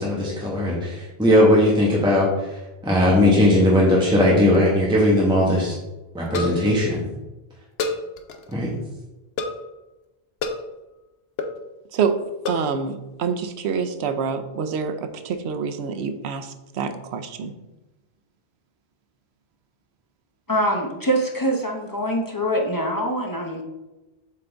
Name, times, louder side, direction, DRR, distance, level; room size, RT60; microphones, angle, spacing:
voice 1, 0.0-2.3 2.8-5.7 6.1-7.0 8.5-8.7, left 1 dB, 5° right, -5 dB, 1.1 m, -18 dB
sound 1, 4.0-4.6 4.8-4.9 5.1-5.2 6.3-6.8 7.8-8.6 9.4-9.7 10.4-10.7 11.4-11.6 12.4-12.7, left 3 dB, 75° left, 0.9 m, -28 dB
voice 2, 12.5-17.5, right 6 dB, 90° right, 8 dB, 0.9 m, -26 dB
voice 3, 20.5-23.6, equal, 20° left, 1 dB, 0.7 m, -24 dB
7.5 x 3.8 x 3.4 m, 1.1 s
omnidirectional pair, 1.1 m